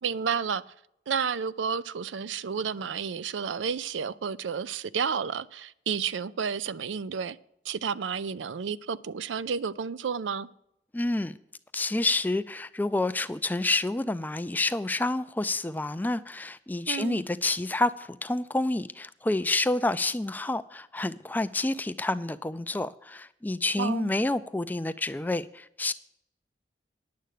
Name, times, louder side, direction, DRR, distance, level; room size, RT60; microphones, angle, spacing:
voice 1, 0.0-0.6 1.1-7.4 7.6-10.5 16.9-17.2 23.8-24.1, right 6 dB, 90° right, 0.5 m, -31 dB
voice 2, 10.9-11.4 11.7-25.9, left 2 dB, 10° left, 0.3 m, -28 dB
10.5 x 7.6 x 6.6 m
head